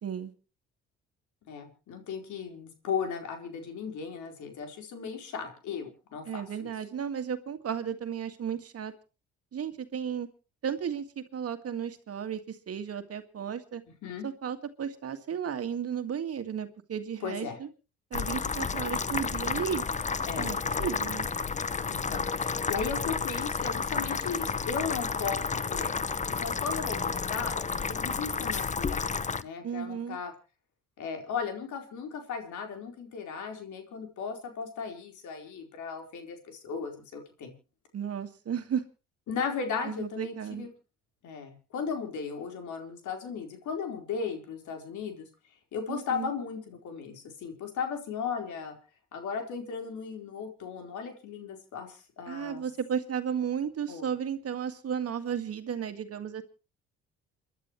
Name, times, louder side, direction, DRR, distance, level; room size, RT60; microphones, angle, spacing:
voice 1, 0.0-0.3 6.3-8.9 9.5-10.3 10.6-13.8 14.2-17.7 18.1-19.8 20.4-21.3 29.6-30.2 37.9-38.8 39.8-40.7 45.9-46.3 52.3-56.4, right 8 dB, 50° right, 8 dB, 2.0 m, -34 dB
voice 2, 1.5-6.7 14.0-14.3 17.2-17.6 20.3-20.6 21.8-26.0 26.3-27.5 27.9-30.3 31.0-37.5 39.3-40.7 41.2-45.3 45.7-48.8 49.1-52.6 53.9-54.1, left 6 dB, 70° left, 4 dB, 4.4 m, -36 dB
sound 1, 18.1-29.4, left 5 dB, 25° left, 0.8 m, -31 dB
29.0 x 11.0 x 3.2 m, 0.33 s
supercardioid pair, 70°, 31 cm